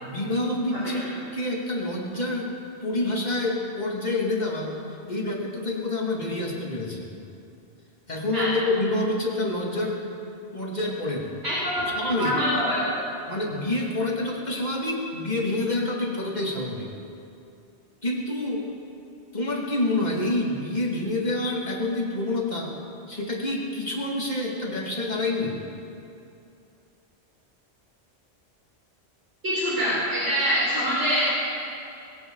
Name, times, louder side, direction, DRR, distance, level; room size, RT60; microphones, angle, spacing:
voice 1, 0.0-1.1 1.3-2.5 2.8-4.7 5.1-7.1 8.1-10.0 10.5-11.3 12.0-12.4 13.3-16.9 18.0-18.7 19.3-22.7 23.1-25.6, left 2 dB, 40° left, -2 dB, 2.7 m, -27 dB
voice 2, 12.2-12.9 29.4-31.3, equal, 85° right, -10 dB, 5.6 m, -24 dB
21.0 x 17.0 x 4.0 m, 2.6 s
omnidirectional pair, 1.1 m